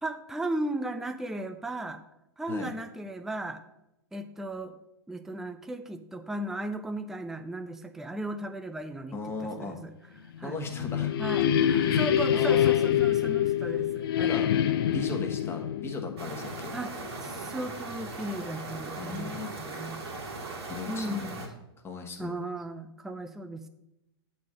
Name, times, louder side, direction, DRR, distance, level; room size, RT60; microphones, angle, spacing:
voice 1, 0.0-2.0 2.4-3.6 4.1-4.7 5.1-9.9 10.2-10.6 11.2-14.4 16.7-17.0 17.2-20.0 20.9-21.5 22.2-23.7, right 1 dB, 5° right, 8 dB, 0.4 m, -36 dB
voice 2, 9.1-9.8 10.4-11.1 11.8-12.0 12.3-13.0 14.2-14.5 14.8-16.7 19.0-19.5 20.7-21.3 21.8-22.4, left 3 dB, 15° left, 3 dB, 1.3 m, -37 dB
sound 1, 10.4-17.1, left 10 dB, 60° left, 0.6 m, -26 dB
sound 2, 16.2-21.5, right 3 dB, 70° right, 2.1 m, -39 dB
8.3 x 4.2 x 6.3 m, 0.86 s
hypercardioid pair, 110°, 14 cm